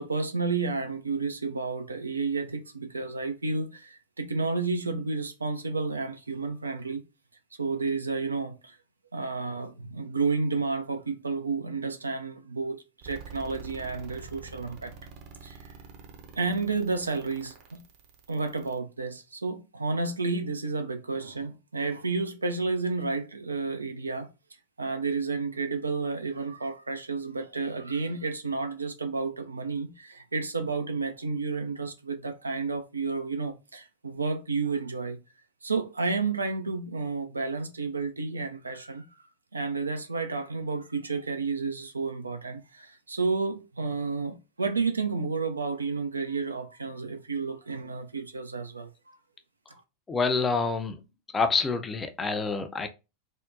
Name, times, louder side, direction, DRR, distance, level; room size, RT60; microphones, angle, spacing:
voice 1, 0.0-7.0 7.6-8.8 9.1-14.9 15.4-15.7 16.4-17.8 18.3-24.3 24.8-35.2 35.6-39.1 39.5-49.2 49.7-49.8, right 4 dB, 85° right, 0.4 m, -31 dB
sound 1, 13.0-18.8, right 6 dB, 50° right, 0.7 m, -46 dB
voice 2, 50.1-51.0 51.3-52.9, left 4 dB, 20° left, 0.4 m, -27 dB
3.5 x 2.1 x 2.5 m
figure-of-eight pair, 90°, 0 cm